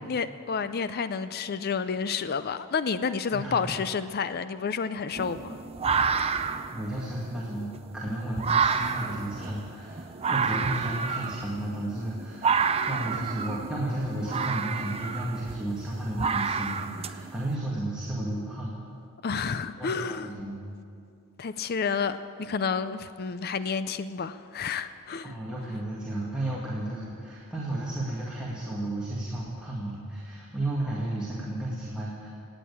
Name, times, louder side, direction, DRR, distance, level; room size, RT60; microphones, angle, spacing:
voice 1, 0.0-5.6 19.2-20.3 21.4-25.3, left 5 dB, 45° left, 13 dB, 0.5 m, -30 dB
voice 2, 3.3-3.8 6.7-18.7 19.8-20.6 25.2-32.3, right 1 dB, 5° right, -7 dB, 2.2 m, -33 dB
sound 1, 5.1-17.5, right 5 dB, 25° right, 0.5 m, -30 dB
18.0 x 9.1 x 8.6 m, 2.4 s
head